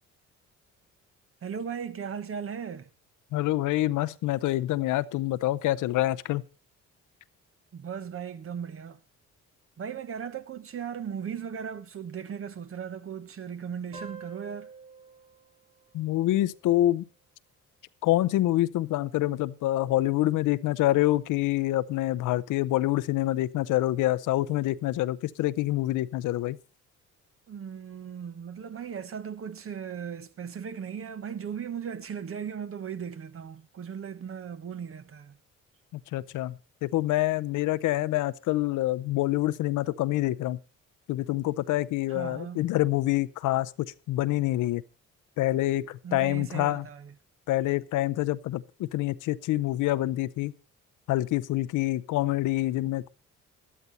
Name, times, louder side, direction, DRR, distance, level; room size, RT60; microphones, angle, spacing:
voice 1, 1.4-2.9 7.7-9.0 9.8-14.7 27.5-35.4 42.1-42.7 46.0-47.1, right 7 dB, 45° right, 1.1 m, -37 dB
voice 2, 3.3-6.4 15.9-17.0 18.0-26.6 35.9-36.5 36.8-40.6 41.1-44.8 45.4-46.8 47.5-50.5 51.1-53.1, left 16 dB, 85° left, 0.7 m, -26 dB
sound 1, 13.9-17.1, right 4 dB, 85° right, 4.2 m, -48 dB
12.5 x 12.5 x 4.2 m
cardioid pair, 90°, 30 cm